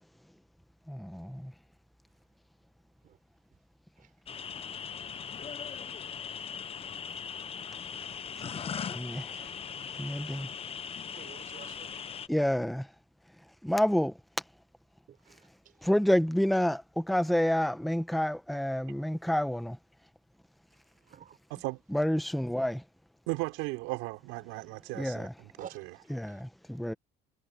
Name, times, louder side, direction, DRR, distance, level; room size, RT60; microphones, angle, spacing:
voice 1, 0.9-1.5 8.4-9.4 9.9-10.5 12.3-12.9 13.6-14.2 15.8-19.8 21.9-22.8 24.9-25.3 26.1-26.9, equal, ahead, 1.1 m, -29 dB
sound 1, 4.3-12.3, left 7 dB, 30° left, 1.0 m, -39 dB
voice 2, 9.1-9.8 11.1-12.0 15.1-15.4 21.1-21.4 25.6-25.8, right 9 dB, 40° right, 5.3 m, -50 dB
voice 3, 23.3-26.0, right 24 dB, 80° right, 5.3 m, -36 dB
cardioid pair, 125°, 21 cm